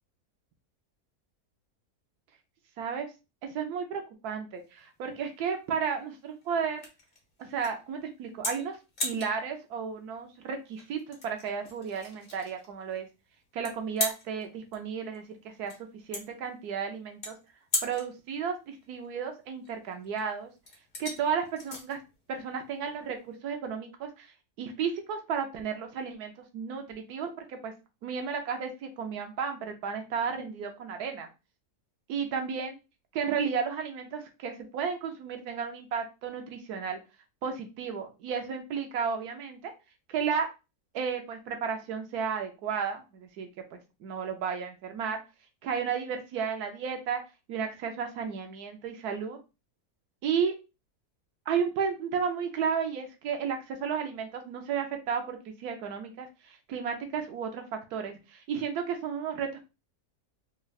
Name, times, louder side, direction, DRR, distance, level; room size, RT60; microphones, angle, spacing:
voice 1, 2.8-3.1 3.4-6.8 7.4-8.8 9.0-13.1 13.5-15.7 16.1-17.4 17.8-20.5 21.0-22.0 22.3-24.3 24.6-27.7 28.0-31.3 32.1-32.8 33.1-37.0 37.4-39.7 40.1-40.5 40.9-45.2 45.6-47.2 47.5-49.4 50.2-50.6 51.5-59.6, right 6 dB, 80° right, 4 dB, 1.2 m, -33 dB
sound 1, 4.6-23.4, left 2 dB, 40° left, 1.3 m, -40 dB
3.6 x 3.2 x 2.3 m, 0.28 s
omnidirectional pair, 1.6 m